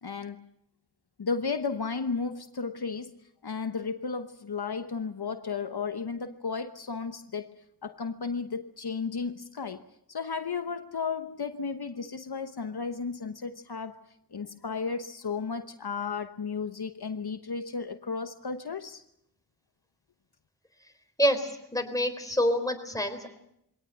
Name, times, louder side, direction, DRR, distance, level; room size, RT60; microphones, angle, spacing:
voice 1, 0.0-0.4 1.2-9.8 10.1-14.0 14.3-19.0, left 5 dB, 75° left, 1.1 m, -34 dB
voice 2, 21.2-23.3, equal, 10° left, 4.0 m, -27 dB
22.5 x 18.0 x 9.1 m
wide cardioid pair, 55°, 39 cm